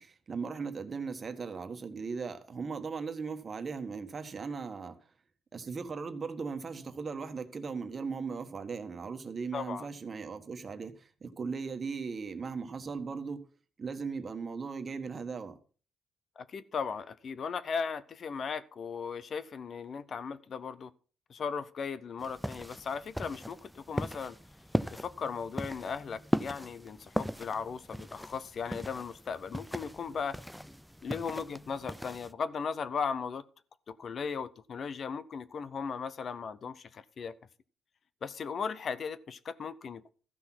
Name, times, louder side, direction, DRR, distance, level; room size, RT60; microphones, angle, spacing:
voice 1, 0.0-5.0 5.5-13.4 13.8-15.6, right 5 dB, 40° right, 1.4 m, -38 dB
voice 2, 9.5-9.9 16.4-20.9 21.3-24.4 24.9-30.4 31.0-33.4 33.9-37.4 38.2-40.1, left 6 dB, 50° left, 0.6 m, -37 dB
sound 1, 22.2-32.3, equal, ahead, 0.4 m, -38 dB
13.5 x 6.0 x 6.0 m
cardioid pair, 90°, 0 cm